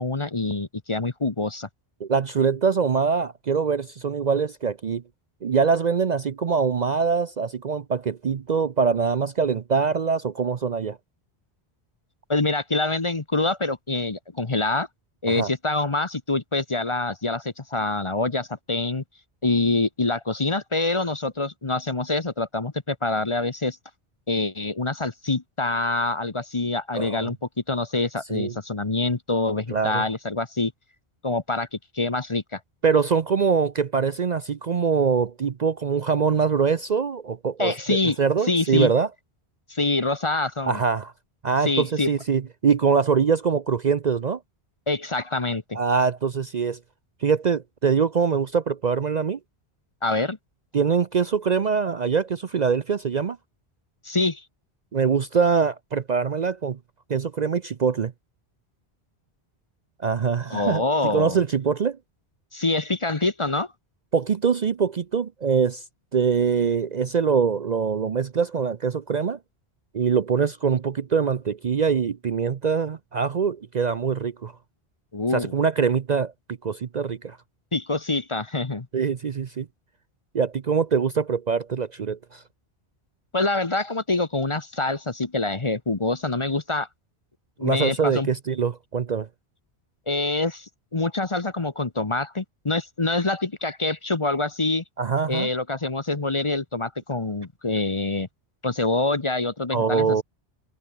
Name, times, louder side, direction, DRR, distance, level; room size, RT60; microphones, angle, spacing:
voice 1, 0.0-1.7 12.3-14.9 15.2-19.0 19.4-23.8 24.3-27.4 27.7-30.7 31.2-32.6 37.6-38.2 38.5-38.9 39.7-40.8 41.6-42.1 44.9-45.8 50.0-50.4 54.0-54.4 60.5-61.4 62.5-63.7 75.1-75.5 77.7-78.9 83.3-86.9 87.6-88.3 90.1-94.8 95.3-98.3 98.6-100.2, left 2 dB, 30° left, 1.1 m, -25 dB
voice 2, 2.0-5.0 5.4-11.0 15.3-15.5 27.0-27.3 28.3-28.6 29.7-30.1 32.8-39.1 40.7-41.1 41.4-44.4 45.7-46.8 47.2-49.4 50.7-53.4 54.9-56.8 57.1-58.1 60.0-62.0 64.1-65.8 66.1-69.4 69.9-74.5 75.3-77.4 78.9-79.7 80.3-82.4 87.6-89.3 95.0-95.5 99.7-100.2, right 6 dB, 45° right, 0.7 m, -23 dB
omnidirectional pair, 1.1 m